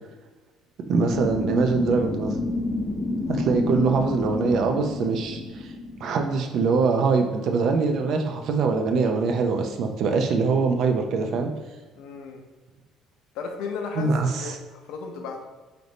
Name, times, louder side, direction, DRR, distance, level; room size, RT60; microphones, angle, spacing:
voice 1, 0.9-2.3 3.3-5.7 6.0-11.5 14.0-14.6, right 4 dB, 65° right, 4 dB, 0.5 m, -23 dB
sound 1, 1.1-6.1, left 2 dB, 30° left, 0.6 m, -29 dB
voice 2, 11.9-12.5 13.3-15.4, left 5 dB, 75° left, 3 dB, 0.6 m, -35 dB
3.4 x 2.6 x 4.0 m, 1.3 s
supercardioid pair, 80°, 0 cm